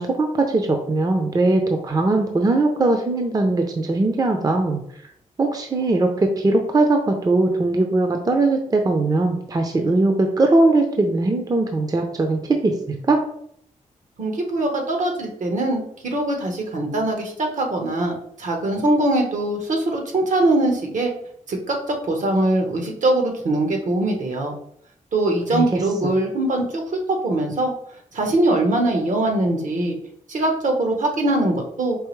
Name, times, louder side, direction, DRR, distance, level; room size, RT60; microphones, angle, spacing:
voice 1, 0.0-4.8 5.4-13.2 25.5-25.6, right 2 dB, 30° right, 4 dB, 0.5 m, -20 dB
voice 2, 14.2-18.1 18.4-21.1 21.5-24.5 25.1-26.8 27.1-27.7 28.1-30.0 30.3-32.0, right 2 dB, 70° right, 2 dB, 1.1 m, -22 dB
4.7 x 2.9 x 3.1 m, 0.68 s
cardioid pair, 90°, 14 cm